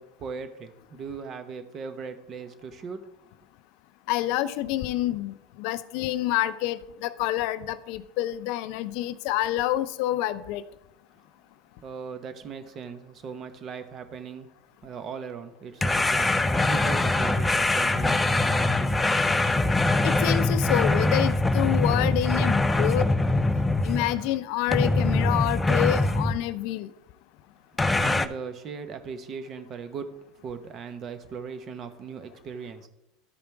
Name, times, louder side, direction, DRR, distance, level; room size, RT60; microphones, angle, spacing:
voice 1, 0.0-3.1 11.8-14.5 14.8-19.1 28.0-30.1 30.4-32.9, right 6 dB, 40° right, 8 dB, 1.1 m, -38 dB
voice 2, 4.1-10.6 20.0-23.1 23.8-26.9, left 14 dB, 65° left, 14 dB, 0.5 m, -28 dB
sound 1, 15.8-24.3 24.7-26.4 27.8-28.3, left 2 dB, 10° left, 0.5 m, -23 dB
13.0 x 5.1 x 3.5 m, 0.84 s
hypercardioid pair, 95°, 0 cm